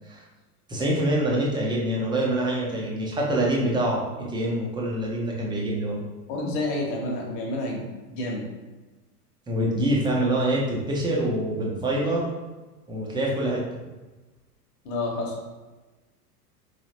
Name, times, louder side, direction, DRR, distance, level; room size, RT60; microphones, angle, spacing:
voice 1, 0.7-6.0 9.5-12.3 12.9-13.6, right 1 dB, 10° right, -3 dB, 0.8 m, -25 dB
voice 2, 6.3-8.5 14.8-15.4, left 2 dB, 35° left, -1 dB, 1.1 m, -29 dB
4.6 x 3.3 x 2.8 m, 1.2 s
figure-of-eight pair, 90°, 48 cm